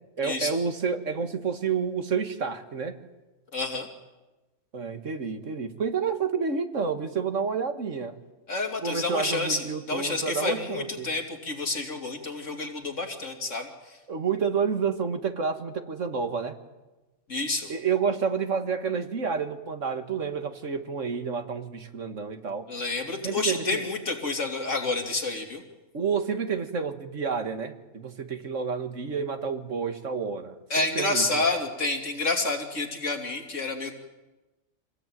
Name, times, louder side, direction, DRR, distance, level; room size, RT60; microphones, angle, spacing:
voice 1, 0.2-2.9 4.7-8.2 8.8-11.1 14.1-16.5 17.7-22.7 23.2-23.8 25.9-31.5, right 5 dB, 75° right, 7 dB, 2.1 m, -29 dB
voice 2, 3.5-3.9 8.5-14.0 17.3-17.7 22.7-25.6 30.7-33.9, left 2 dB, 75° left, 2 dB, 3.3 m, -29 dB
26.0 x 19.0 x 9.2 m, 1.1 s
omnidirectional pair, 1.3 m